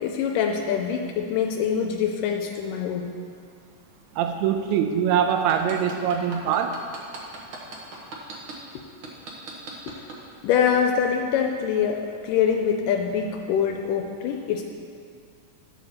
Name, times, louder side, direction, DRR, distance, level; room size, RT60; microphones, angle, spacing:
voice 1, 0.0-3.1 10.4-14.6, left 7 dB, 85° left, 2 dB, 2.1 m, -24 dB
voice 2, 4.1-6.8, right 8 dB, 80° right, 6 dB, 1.7 m, -23 dB
sound 1, 5.3-8.5 9.0-10.2 10.7-10.8, right 3 dB, 65° right, 1.3 m, -38 dB
11.5 x 6.7 x 4.2 m, 2.2 s
omnidirectional pair, 3.8 m